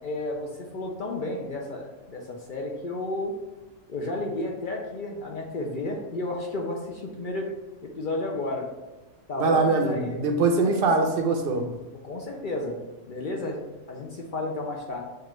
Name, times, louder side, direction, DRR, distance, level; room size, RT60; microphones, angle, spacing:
voice 1, 0.0-3.3 3.9-7.5 7.8-8.6 9.3-10.2 10.6-10.9 11.9-12.8 13.0-13.6 13.9-15.0, left 2 dB, 55° left, 0 dB, 0.6 m, -32 dB
voice 2, 9.4-11.7, right 3 dB, 55° right, 4 dB, 0.7 m, -23 dB
6.6 x 2.4 x 3.1 m, 1.2 s
omnidirectional pair, 1.3 m